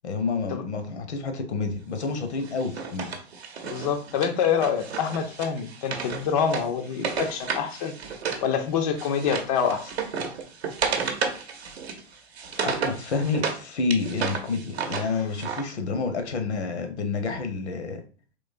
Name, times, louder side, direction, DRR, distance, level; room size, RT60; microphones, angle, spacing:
voice 1, 0.0-3.1 12.6-18.0, left 4 dB, 70° left, 7 dB, 0.8 m, -29 dB
Wood, 2.4-8.5 8.7-13.6 13.9-15.6, right 6 dB, 60° right, 0.7 m, -32 dB
voice 2, 3.6-7.9 8.4-9.9, left 7 dB, 35° left, 5 dB, 0.4 m, -26 dB
3.7 x 3.1 x 2.5 m, 0.39 s
figure-of-eight pair, 100°, 35 cm